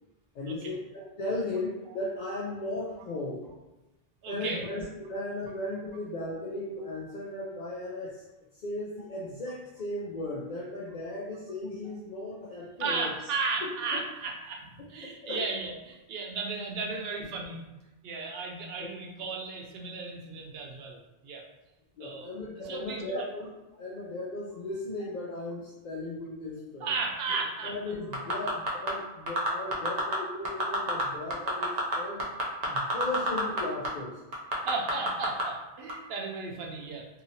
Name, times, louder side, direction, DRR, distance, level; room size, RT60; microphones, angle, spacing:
voice 1, 0.3-0.8 1.2-3.4 4.3-8.2 8.5-13.1 13.6-13.7 15.0-15.4 18.8-18.9 22.0-23.5 23.8-26.9 27.3-32.3 32.7-34.2, left 2 dB, 55° left, -5 dB, 0.6 m, -36 dB
voice 2, 4.2-4.6 12.8-17.6 18.0-21.4 22.0-22.3 22.6-23.2 26.8-27.8 34.6-37.1, right 4 dB, 75° right, 0 dB, 0.8 m, -35 dB
sound 1, 28.1-28.9 29.3-30.1 30.4-31.0 31.3-33.6 33.8-33.9 34.3-35.4 35.9-36.0, right 1 dB, 45° right, 0.6 m, -28 dB
2.8 x 2.7 x 2.7 m, 1.1 s
omnidirectional pair, 1.0 m